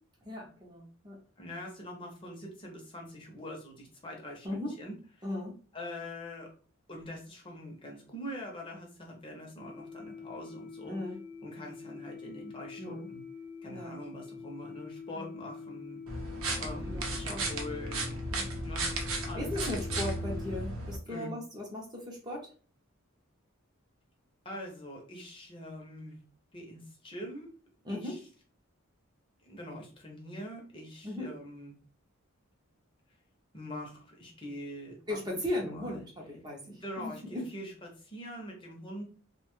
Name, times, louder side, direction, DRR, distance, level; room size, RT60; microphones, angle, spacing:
voice 1, 0.2-1.2 4.4-4.7 5.2-5.6 10.8-11.2 12.8-13.1 13.7-14.0 15.2-15.4 16.9-17.5 18.3-18.5 19.3-22.5 27.8-28.2 31.0-31.3 35.1-37.5, left 1 dB, 20° right, -1 dB, 0.5 m, -37 dB
voice 2, 1.4-5.0 5.7-6.5 6.9-11.0 11.4-13.2 13.6-16.0 16.6-18.3 18.6-19.0 19.3-19.5 19.9-20.0 21.1-21.3 24.4-26.2 26.5-27.5 27.9-28.2 29.4-31.7 33.5-35.0 35.6-36.0 36.6-37.7 38.0-39.0, left 1 dB, 25° left, 0 dB, 0.6 m, -43 dB
sound 1, 9.6-20.6, left 5 dB, 80° left, 0.7 m, -45 dB
sound 2, 16.1-21.0, right 2 dB, 75° right, 0.6 m, -35 dB
2.7 x 2.2 x 3.0 m, 0.40 s
head